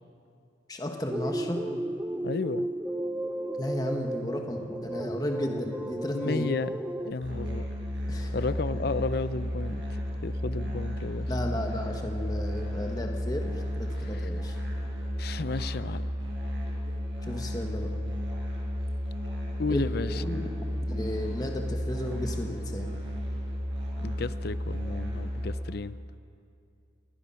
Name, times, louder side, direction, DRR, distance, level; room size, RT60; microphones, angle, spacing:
voice 1, 0.7-1.6 3.6-6.5 8.1-8.3 11.3-14.6 17.2-18.0 19.7-20.5 20.9-22.9, left 1 dB, 20° left, 2 dB, 1.5 m, -34 dB
sound 1, 1.1-7.1, right 1 dB, 10° right, 0.5 m, -34 dB
voice 2, 2.2-2.7 6.1-6.7 7.0-7.6 8.3-9.8 10.2-11.3 14.1-14.3 15.2-16.0 19.6-20.2 24.0-26.0, left 3 dB, 55° left, 15 dB, 0.5 m, -32 dB
Musical instrument, 7.2-25.6, equal, 65° right, 6.8 m, -33 dB
27.0 x 19.0 x 5.7 m, 2.5 s
head